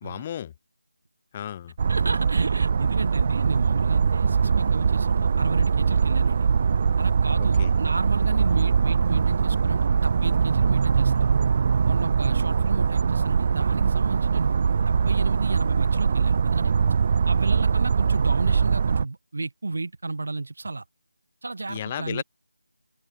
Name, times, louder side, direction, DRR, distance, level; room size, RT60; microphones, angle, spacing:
voice 1, 0.0-0.5 1.3-1.7 7.6-7.7 21.7-22.2, left 10 dB, 15° left, 2.6 m, -33 dB
sound 1, 1.8-19.0, right 6 dB, 25° right, 0.6 m, -22 dB
voice 2, 1.9-6.5 7.0-11.3 11.8-14.6 14.9-16.7 17.3-20.8 21.4-22.2, right 3 dB, 50° right, 5.7 m, -32 dB
open air
figure-of-eight pair, 175°, 0 cm